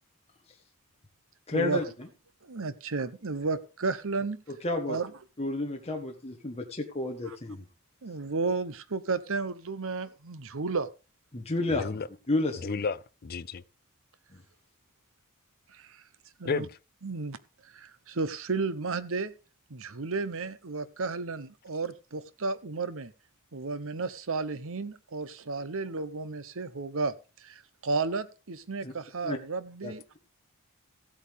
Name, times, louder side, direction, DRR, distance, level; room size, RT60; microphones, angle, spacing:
voice 1, 1.5-2.1 4.5-5.0 5.4-7.6 11.3-12.8 28.8-28.9 29.2-29.4 29.8-29.9, left 2 dB, 30° left, 1.4 m, -31 dB
voice 2, 2.4-4.4 4.9-5.1 7.3-7.4 8.0-10.9 15.7-16.0 16.4-16.7 17.0-17.4 17.7-19.3 19.7-23.1 23.5-27.1 27.4-30.2, right 4 dB, 65° right, 0.9 m, -33 dB
voice 3, 12.6-13.6 16.4-16.7, left 5 dB, 45° left, 0.5 m, -32 dB
15.5 x 8.5 x 3.6 m
head